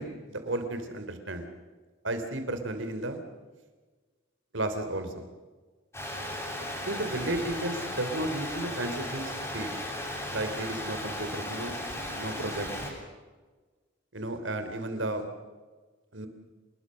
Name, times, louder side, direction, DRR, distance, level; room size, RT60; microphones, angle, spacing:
voice 1, 0.0-1.5 2.0-3.2 4.5-5.3 6.9-9.8 10.3-11.7 12.1-12.7 14.1-15.3 16.1-16.3, right 1 dB, 75° right, 8 dB, 3.5 m, -33 dB
sound 1, 5.9-12.9, left 1 dB, 15° left, 7.8 m, -36 dB
27.5 x 20.5 x 6.5 m, 1.3 s
head